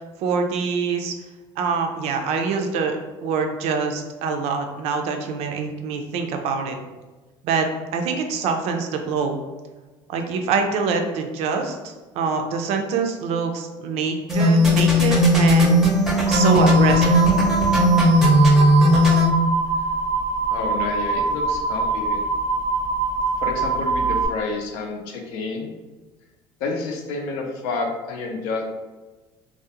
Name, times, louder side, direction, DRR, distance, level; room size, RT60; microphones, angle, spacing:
voice 1, 0.2-1.1 1.6-6.8 7.4-9.4 10.1-15.9 16.3-17.2, right 5 dB, 65° right, 4 dB, 0.4 m, -25 dB
sound 1, 14.3-19.3, equal, 5° right, 0.6 m, -16 dB
sound 2, 16.3-24.3, right 3 dB, 40° left, 0.6 m, -24 dB
voice 2, 20.5-22.2 23.4-25.7 26.6-28.6, left 3 dB, 80° left, 2 dB, 0.5 m, -29 dB
2.4 x 2.0 x 2.8 m, 1.2 s
supercardioid pair, 105°, 12 cm